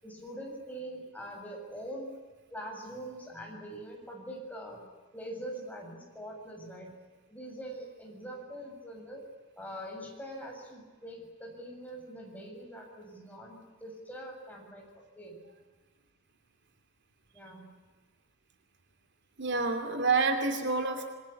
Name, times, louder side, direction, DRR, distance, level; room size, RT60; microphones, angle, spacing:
voice 1, 0.0-2.1 2.5-4.8 5.1-6.9 7.3-9.2 9.6-14.9 15.1-15.4 17.3-17.7, right 1 dB, 5° left, 0 dB, 7.2 m, -43 dB
voice 2, 19.4-21.1, right 4 dB, 55° right, 6 dB, 2.7 m, -28 dB
28.0 x 23.0 x 8.5 m, 1.4 s
head